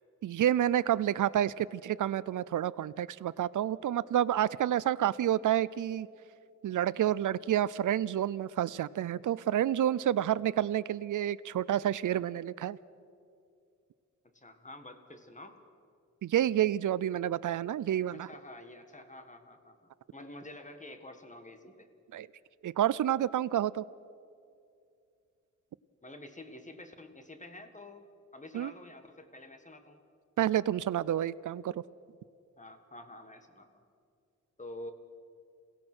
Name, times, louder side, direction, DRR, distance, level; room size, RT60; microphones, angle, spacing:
voice 1, 0.2-6.1 6.6-12.8 16.2-18.3 22.1-22.3 22.6-23.8 28.5-28.7 30.4-31.7, right 11 dB, 85° right, 18 dB, 0.5 m, -29 dB
voice 2, 14.3-15.6 18.1-21.9 26.0-28.0 28.3-30.0 32.6-33.8 34.6-34.9, left 1 dB, 25° left, 7 dB, 1.7 m, -48 dB
28.0 x 16.5 x 6.2 m, 2.4 s
wide cardioid pair, 110°, 30 cm